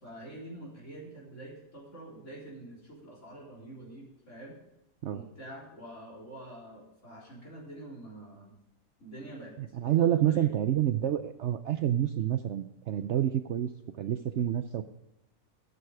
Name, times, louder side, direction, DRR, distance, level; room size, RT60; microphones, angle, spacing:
voice 1, 0.0-4.6 5.0-8.5 9.0-10.5, right 1 dB, 50° left, -4 dB, 4.2 m, -46 dB
voice 2, 9.7-13.7 14.0-14.9, right 11 dB, 65° right, 10 dB, 0.7 m, -28 dB
12.5 x 9.7 x 4.8 m, 0.89 s
omnidirectional pair, 1.6 m